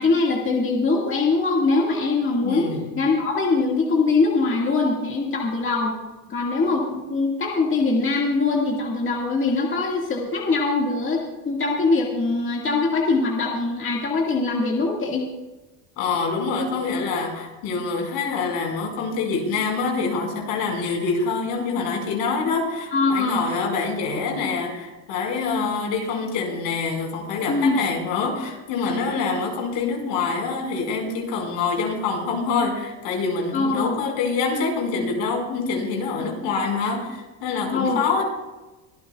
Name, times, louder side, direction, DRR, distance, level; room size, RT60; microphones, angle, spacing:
voice 1, 0.0-2.7 3.0-6.0 6.3-15.2 22.9-23.4 27.5-27.8 33.5-34.0 37.7-38.0, left 3 dB, 25° left, -2 dB, 2.0 m, -22 dB
voice 2, 2.4-2.9 16.0-38.2, left 4 dB, 65° left, 1 dB, 5.1 m, -25 dB
24.0 x 14.0 x 2.4 m, 1.1 s
cardioid pair, 140°, 48 cm